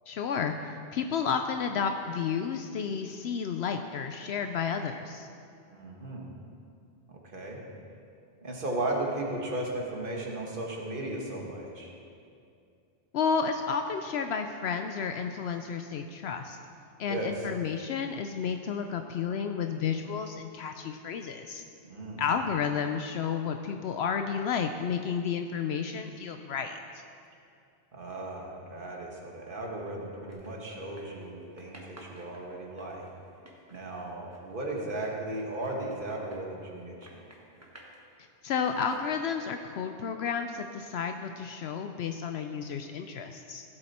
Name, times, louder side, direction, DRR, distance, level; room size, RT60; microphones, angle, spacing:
voice 1, 0.1-5.3 13.1-16.6 17.0-21.6 22.2-26.8 38.4-43.6, left 6 dB, 75° left, 6 dB, 0.8 m, -31 dB
voice 2, 5.7-6.3 7.1-7.6 8.4-11.9 17.1-17.5 21.9-22.2 27.9-33.0 33.7-37.0, right 2 dB, 50° right, -1 dB, 1.8 m, -36 dB
sound 1, 30.3-31.3 31.6-36.8 37.0-38.0 38.5-39.6, right 1 dB, 15° right, 1.3 m, -52 dB
16.0 x 7.8 x 4.3 m, 2.5 s
omnidirectional pair, 1.1 m